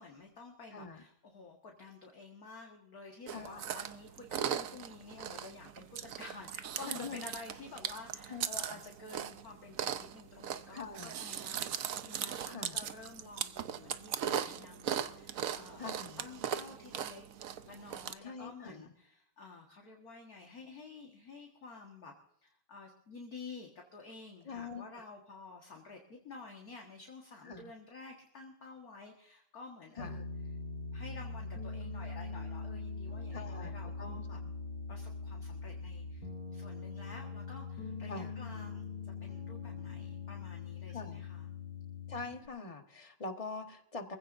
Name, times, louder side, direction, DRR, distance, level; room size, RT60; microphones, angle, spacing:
voice 1, 0.0-17.3 17.6-30.3 30.9-34.4 34.9-41.5, left 3 dB, 45° left, 1 dB, 1.9 m, -51 dB
voice 2, 0.7-1.0 3.3-3.6 6.9-7.2 8.3-8.8 10.7-11.2 12.5-12.8 15.8-16.2 18.2-18.9 24.4-25.1 27.4-27.7 30.0-30.3 33.3-34.2 38.1-38.4 40.9-41.2 42.1-44.2, left 4 dB, 20° left, 5 dB, 1.0 m, -44 dB
Chewing mastication, 3.3-18.1, right 9 dB, 75° right, 0.7 m, -39 dB
Piano, 30.0-42.5, left 4 dB, 90° left, 4.0 m, -42 dB
24.0 x 15.5 x 2.6 m, 0.74 s
omnidirectional pair, 2.3 m